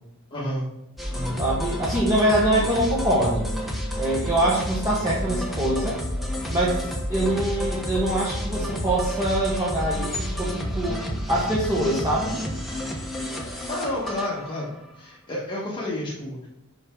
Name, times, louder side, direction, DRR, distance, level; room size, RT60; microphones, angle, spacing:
voice 1, 0.3-0.6 1.1-1.4 13.4-16.5, left 1 dB, 20° left, -7 dB, 1.4 m, -31 dB
sound 1, 1.0-14.9, equal, ahead, 1.0 m, -30 dB
voice 2, 1.4-3.5 4.0-6.0 6.5-11.0 11.3-12.4, right 1 dB, 15° right, -6 dB, 1.3 m, -24 dB
5.7 x 5.3 x 3.8 m, 0.85 s
head